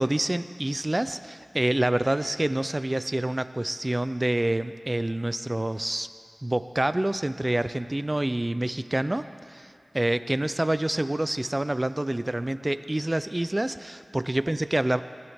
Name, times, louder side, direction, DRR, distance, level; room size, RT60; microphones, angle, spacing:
voice 1, 0.0-6.1 6.4-9.2 9.5-15.0, right 1 dB, 25° right, 13 dB, 0.4 m, -27 dB
17.5 x 11.0 x 3.5 m, 2.4 s
wide cardioid pair, 70°, 0 cm